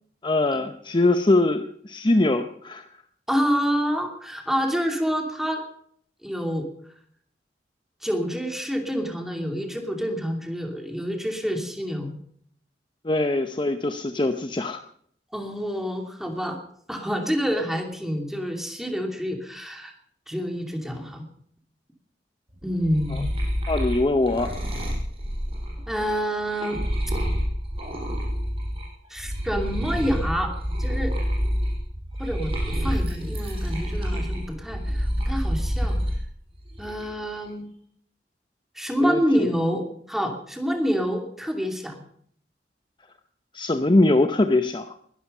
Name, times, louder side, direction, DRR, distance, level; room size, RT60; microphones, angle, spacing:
voice 1, 0.2-2.9 13.0-14.8 23.7-24.5 39.0-39.5 43.5-45.0, left 2 dB, 25° left, 7 dB, 0.7 m, -22 dB
voice 2, 3.3-5.6 6.2-6.7 8.0-12.1 15.3-16.6 16.9-19.9 20.3-21.3 22.6-23.3 25.9-26.8 29.1-30.5 30.8-31.1 32.2-36.0 36.8-37.7 38.7-42.0, equal, ahead, 3 dB, 2.8 m, -27 dB
sound 1, 22.6-28.8 29.2-36.2 36.6-37.2, equal, 35° right, 5.8 m, -28 dB
20.5 x 12.5 x 5.6 m, 0.63 s
head